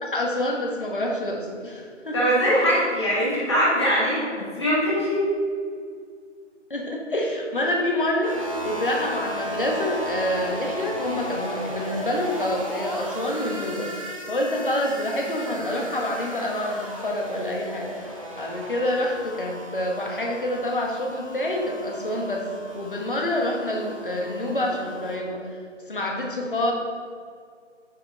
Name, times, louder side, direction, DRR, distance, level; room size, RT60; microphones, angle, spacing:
voice 1, 0.0-2.2 2.6-2.7 6.7-22.5 22.7-25.4 25.9-26.7, left 1 dB, 45° left, 0 dB, 1.4 m, -27 dB
voice 2, 2.1-5.2, equal, 20° left, -7 dB, 1.9 m, -22 dB
sound 1, 8.2-25.2, equal, 25° right, 0.8 m, -36 dB
9.3 x 5.6 x 4.2 m, 2.1 s
figure-of-eight pair, 160°, 37 cm